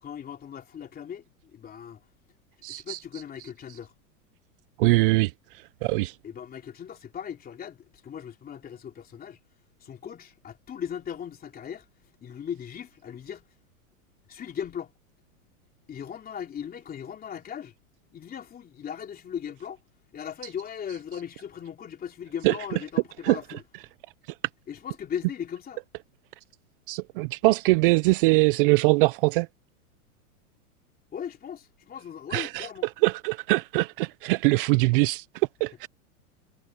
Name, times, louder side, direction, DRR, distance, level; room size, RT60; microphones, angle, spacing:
voice 1, 0.0-2.0 2.7-3.9 6.2-9.4 9.8-11.9 12.2-13.5 14.3-14.9 15.9-17.7 18.1-19.8 20.1-23.6 24.7-25.8 31.1-32.9, left 8 dB, 20° left, 3.2 m, -38 dB
voice 2, 2.6-3.0 4.8-6.2 22.4-22.6 23.2-23.4 24.3-24.4 26.9-29.5 32.3-32.7 33.0-35.9, right 24 dB, 40° right, 0.5 m, -23 dB
hypercardioid pair, 140°, 45 cm